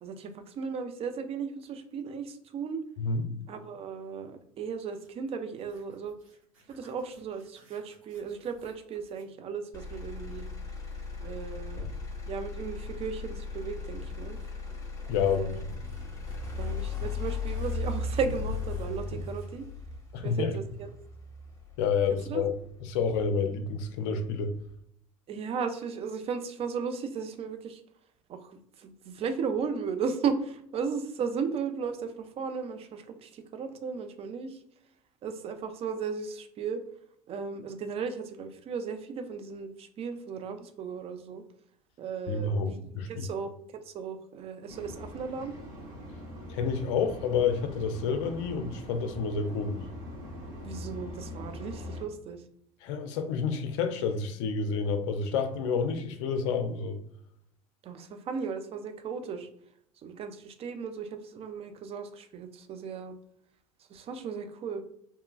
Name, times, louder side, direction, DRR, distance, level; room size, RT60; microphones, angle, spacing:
voice 1, 0.0-2.8 3.5-6.1 6.7-10.5 11.2-11.8 12.3-14.4 15.2-15.6 16.6-19.6 20.2-20.9 22.3-22.4 25.3-27.8 28.3-34.6 35.2-36.8 37.3-41.4 42.0-42.8 43.1-45.5 50.6-52.4 57.8-59.5 60.0-63.1 63.9-64.8, right 5 dB, 35° right, 0.4 m, -35 dB
voice 2, 3.0-3.3 15.1-15.6 20.1-20.6 21.8-22.5 22.8-24.5 42.3-43.3 46.5-49.8 52.8-57.0, left 5 dB, 60° left, 0.4 m, -29 dB
sound 1, 4.8-9.3 11.7-11.8 13.8-19.6, right 3 dB, 80° right, 0.7 m, -49 dB
Motor vehicle (road), 9.7-23.7 24.2-24.7, left 4 dB, 20° left, 0.8 m, -37 dB
sound 2, 44.7-52.1, left 1 dB, 60° right, 1.0 m, -43 dB
2.9 x 2.2 x 2.2 m
figure-of-eight pair, 70°, 17 cm